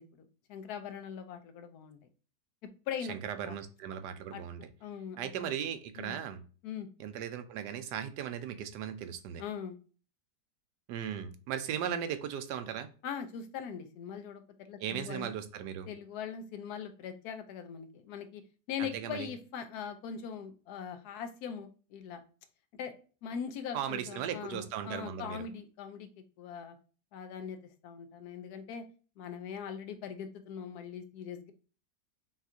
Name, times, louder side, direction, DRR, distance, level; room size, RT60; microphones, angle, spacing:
voice 1, 0.0-2.0 2.6-3.1 3.4-3.5 4.3-5.5 6.0-6.1 6.6-6.9 9.4-9.8 13.0-15.3 15.9-18.4 18.7-22.2 22.8-22.9 23.2-26.1 26.4-26.8 27.1-27.6 27.8-28.8 29.2-31.5, left 7 dB, 75° left, 9 dB, 1.0 m, -41 dB
voice 2, 3.1-4.6 5.2-6.4 7.0-9.4 10.9-12.9 14.8-15.9 18.8-19.3 23.7-25.4, right 9 dB, 85° right, 9 dB, 1.2 m, -37 dB
5.7 x 2.4 x 2.7 m, 0.37 s
omnidirectional pair, 1.8 m